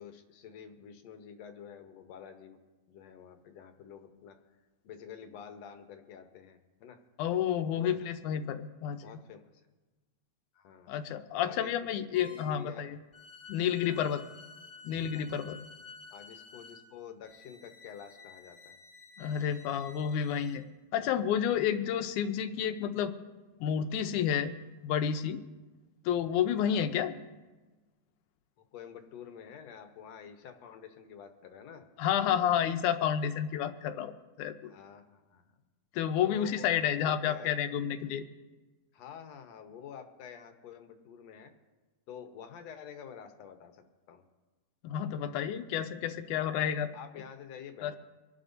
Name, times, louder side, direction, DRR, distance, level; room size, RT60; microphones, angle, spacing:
voice 1, 0.0-2.6 2.9-4.4 4.8-7.0 7.7-8.1 9.0-9.4 10.5-11.0 11.4-12.9 13.8-14.1 15.1-15.3 16.1-18.8 28.7-31.9 34.6-35.4 36.2-37.5 38.9-41.5 42.1-44.2 46.9-48.0, left 8 dB, 65° left, 6 dB, 2.0 m, -48 dB
voice 2, 7.2-9.0 10.9-13.0 13.5-14.2 14.8-15.6 19.2-20.6 20.9-23.1 23.6-24.5 24.8-25.4 26.1-27.2 32.0-34.7 35.9-38.2 44.8-46.9 47.8-48.0, left 9 dB, 85° left, 9 dB, 2.2 m, -30 dB
sound 1, 12.1-12.6 13.1-20.6, left 4 dB, 30° left, 0.6 m, -52 dB
26.0 x 11.5 x 2.7 m, 1.2 s
omnidirectional pair, 3.4 m